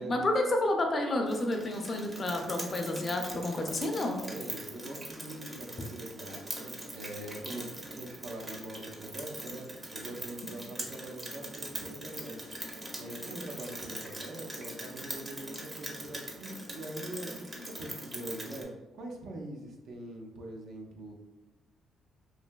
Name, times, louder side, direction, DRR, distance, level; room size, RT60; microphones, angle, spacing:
voice 1, 0.0-4.2, left 1 dB, 40° left, 3 dB, 0.5 m, -30 dB
Rain, 1.3-18.6, right 1 dB, 20° right, 0.6 m, -42 dB
voice 2, 4.3-12.6 13.0-21.1, right 1 dB, 70° right, 1 dB, 0.5 m, -43 dB
3.2 x 2.6 x 2.2 m, 1.1 s
cardioid pair, 90°, 0 cm